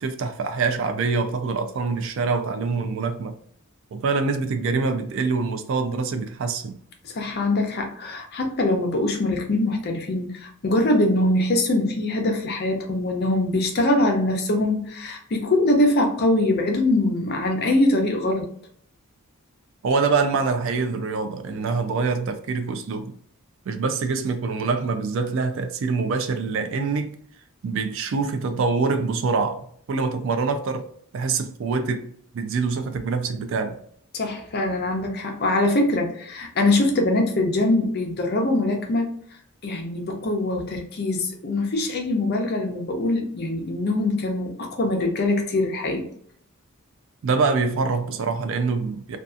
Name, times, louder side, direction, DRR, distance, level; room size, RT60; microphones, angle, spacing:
voice 1, 0.0-3.3 3.9-6.8 19.8-23.2 23.7-27.2 27.6-33.8 47.2-49.2, right 4 dB, 60° right, 0.3 m, -25 dB
voice 2, 7.0-18.5 34.1-39.1 39.6-46.1, left 2 dB, 45° left, 0.5 m, -23 dB
2.6 x 2.3 x 2.4 m
head